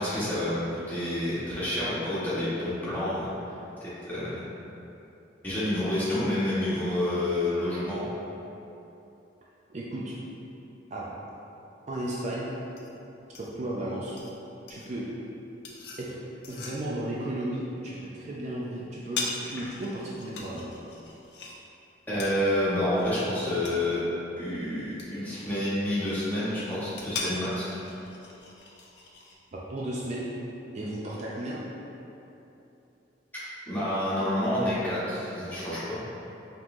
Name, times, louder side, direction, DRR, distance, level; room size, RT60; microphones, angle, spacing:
voice 1, 0.0-3.3 3.8-4.4 5.4-8.1 22.1-24.0 24.4-27.7 33.7-36.0, left 1 dB, 10° left, -11 dB, 1.1 m, -28 dB
voice 2, 9.7-10.2 10.9-11.1 11.9-12.5 13.4-14.2 14.7-15.1 16.0-16.2 16.5-19.2 19.5-20.7 29.5-30.3 30.7-31.6, right 1 dB, 40° right, -6 dB, 0.4 m, -34 dB
sound 1, 12.0-29.3, left 3 dB, 65° left, 0.5 m, -42 dB
5.3 x 3.0 x 2.5 m, 2.9 s
head